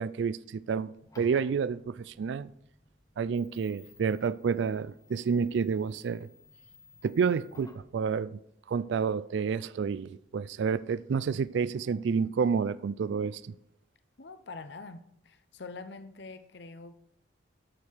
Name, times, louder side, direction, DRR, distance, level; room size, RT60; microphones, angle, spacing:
voice 1, 0.0-2.5 3.2-6.3 7.0-8.4 8.7-13.5, right 6 dB, 70° right, 0.3 m, -29 dB
sound 1, 1.0-7.9, left 2 dB, 15° left, 0.7 m, -56 dB
voice 2, 14.2-17.0, left 3 dB, 60° left, 0.6 m, -45 dB
12.5 x 6.5 x 4.6 m
head